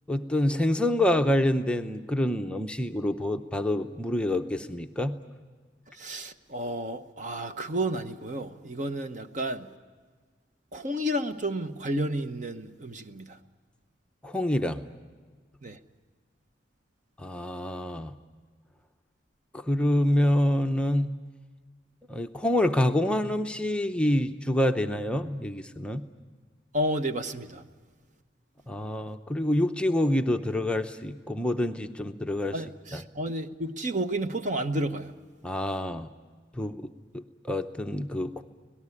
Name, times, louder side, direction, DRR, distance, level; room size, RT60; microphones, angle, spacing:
voice 1, 0.1-5.1 14.2-14.8 17.2-18.1 19.5-21.1 22.1-26.0 28.7-32.6 32.9-33.0 35.4-36.1 36.5-38.4, left 1 dB, 5° left, 0.7 m, -27 dB
voice 2, 6.0-9.7 10.7-13.4 15.6-15.8 26.7-27.6 32.5-35.1, right 1 dB, 40° right, 0.9 m, -31 dB
25.5 x 18.0 x 9.7 m
head